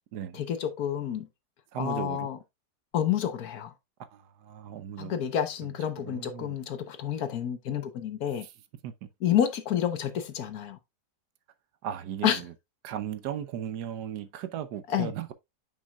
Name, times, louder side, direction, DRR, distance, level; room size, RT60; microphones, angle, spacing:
voice 1, 0.3-1.3 1.8-2.4 2.9-3.7 5.0-8.5 9.2-10.8 12.2-12.4 14.9-15.1, left 9 dB, 65° left, 1.3 m, -29 dB
voice 2, 1.7-2.3 4.1-5.2 6.1-6.6 8.4-8.5 8.8-9.1 11.8-12.5 12.8-15.3, right 10 dB, 80° right, 1.3 m, -36 dB
8.7 x 5.5 x 2.3 m
omnidirectional pair, 1.8 m